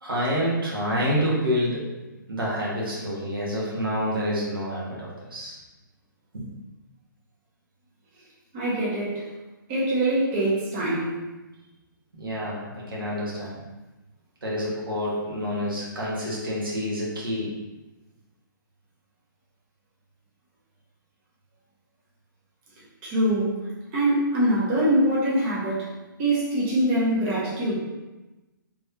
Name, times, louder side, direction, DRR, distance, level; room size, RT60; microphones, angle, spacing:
voice 1, 0.0-1.8 2.3-5.5 6.3-6.5 12.2-13.6 14.4-17.5, equal, 85° right, -5 dB, 1.4 m, -28 dB
voice 2, 8.5-9.3 9.7-11.2 23.0-23.6 23.9-25.9 26.2-27.8, right 1 dB, 35° right, -7 dB, 1.2 m, -23 dB
3.4 x 3.3 x 2.7 m, 1.1 s
hypercardioid pair, 135°, 11 cm